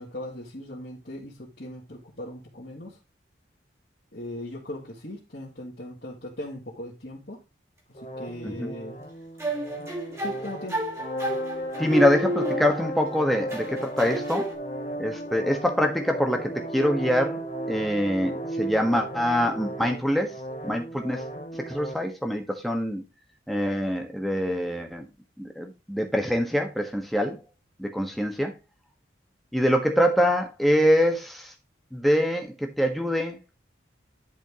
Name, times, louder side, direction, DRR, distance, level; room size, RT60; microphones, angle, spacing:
voice 1, 0.0-3.0 4.1-7.4 7.9-9.0 10.2-10.8, left 1 dB, 50° left, 2.3 m, -39 dB
sound 1, 7.9-21.9, right 1 dB, 35° left, 1.1 m, -35 dB
sound 2, 9.4-13.1 13.5-14.5, right 1 dB, 15° right, 2.4 m, -31 dB
voice 2, 11.8-14.5 15.0-17.4 17.7-20.3 20.6-21.2 21.7-23.0 23.5-25.0 25.4-27.4 27.8-28.5 29.5-31.5 31.9-33.4, equal, ahead, 1.5 m, -24 dB
10.5 x 5.1 x 3.7 m
head